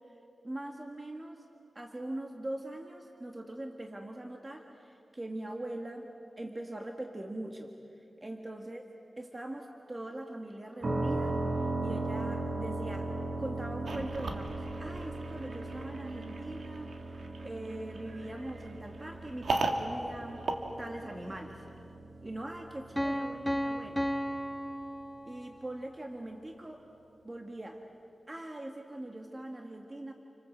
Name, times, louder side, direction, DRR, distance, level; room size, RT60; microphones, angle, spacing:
voice 1, 0.0-1.5 1.8-7.7 8.0-8.8 9.2-20.5 20.8-21.7 22.2-24.1 25.3-26.8 27.2-27.8 28.3-30.1, right 1 dB, 30° right, 2 dB, 1.8 m, -42 dB
sound 1, 10.8-24.5, right 2 dB, 60° right, 2.1 m, -38 dB
sound 2, 13.8-21.5, right 2 dB, 80° right, 2.0 m, -38 dB
Piano, 23.0-25.7, equal, ahead, 1.6 m, -34 dB
29.5 x 25.0 x 7.9 m, 2.9 s
wide cardioid pair, 70°, 0 cm